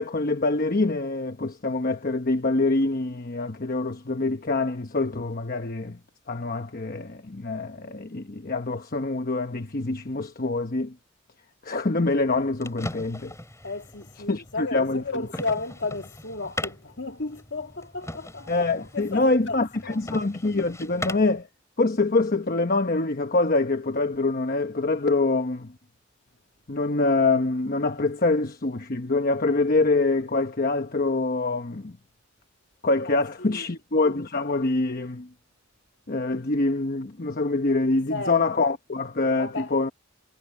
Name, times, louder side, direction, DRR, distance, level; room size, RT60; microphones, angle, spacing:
voice 1, 0.0-6.0 6.3-10.9 11.6-13.3 14.3-15.0 18.5-21.5 21.8-25.7 26.7-31.9 32.8-35.3 36.1-39.9, left 3 dB, 45° left, 1.0 m, -25 dB
sound 1, 12.2-21.4, left 1 dB, 15° left, 5.4 m, -40 dB
voice 2, 13.6-20.2 33.0-33.7 37.8-38.4 39.4-39.7, left 3 dB, 60° left, 2.4 m, -34 dB
head